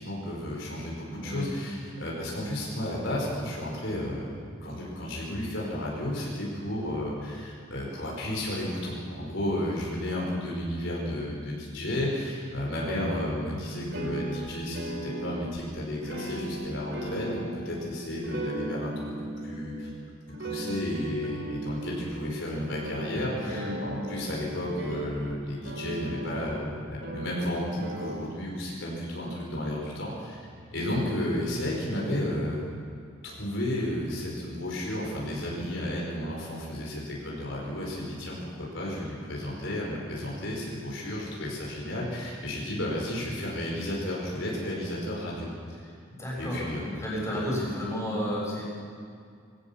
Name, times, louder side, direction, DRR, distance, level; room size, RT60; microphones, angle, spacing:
voice 1, 0.0-4.3 4.6-19.1 19.4-19.9 20.4-32.7 33.2-45.5 46.4-46.9 47.3-47.4, left 1 dB, 65° left, -3 dB, 4.9 m, -32 dB
voice 2, 1.2-1.6 23.3-23.8 46.2-48.6, equal, 15° left, -5 dB, 7.0 m, -32 dB
sound 1, 12.9-13.5 13.9-15.8 16.0-17.7 18.2-20.0 20.3-22.2 22.7-25.4 25.6-26.5 27.0-28.1, right 2 dB, 65° right, 3.2 m, -37 dB
22.0 x 17.0 x 7.0 m, 2.3 s
head